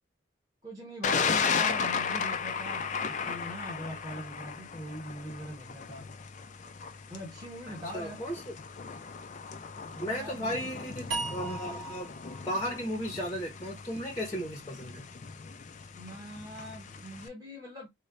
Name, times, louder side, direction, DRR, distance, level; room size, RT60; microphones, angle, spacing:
voice 1, 0.6-6.1 7.1-8.2 9.8-10.6 11.2-11.6 15.9-17.9, equal, 20° right, 1.1 m, -42 dB
Thunder, 1.0-17.3, left 6 dB, 35° left, 0.4 m, -36 dB
voice 2, 7.9-8.4 10.0-12.1 12.5-15.0, equal, 15° left, 0.7 m, -35 dB
sound 1, 11.1-14.3, right 3 dB, 85° right, 0.9 m, -40 dB
3.1 x 2.2 x 3.8 m
head